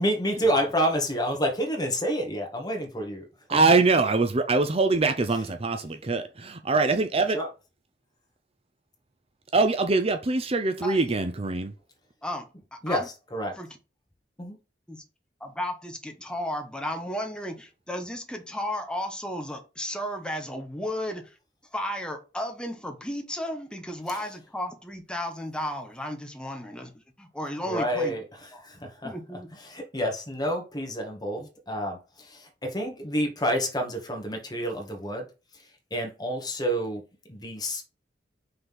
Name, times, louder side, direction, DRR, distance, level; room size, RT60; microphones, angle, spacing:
voice 1, 0.0-3.8 5.3-5.4 7.3-7.5 12.8-13.6 14.4-14.6 27.6-37.0 37.3-37.8, equal, 25° left, 1.9 m, -29 dB
voice 2, 3.5-7.4 9.5-11.7, right 3 dB, 35° right, 0.7 m, -23 dB
voice 3, 10.8-11.1 12.2-13.1 13.6-13.7 14.9-15.0 15.4-21.4 21.7-26.9 27.2-28.1 28.5-28.6 29.0-29.5, left 1 dB, 5° left, 1.3 m, -34 dB
5.7 x 4.0 x 5.4 m
head